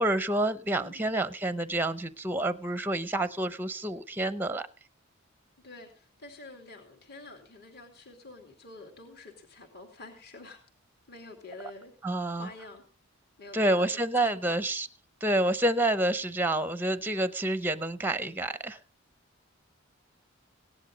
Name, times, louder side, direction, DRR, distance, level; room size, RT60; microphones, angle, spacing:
voice 1, 0.0-4.7 12.0-12.5 13.5-14.9 15.2-18.8, right 1 dB, 10° right, 14 dB, 0.6 m, -28 dB
voice 2, 0.8-1.2 5.6-10.6 11.1-11.9 12.4-12.8 13.4-14.6, left 2 dB, 50° left, 1 dB, 2.7 m, -48 dB
17.0 x 10.5 x 3.9 m, 0.37 s
head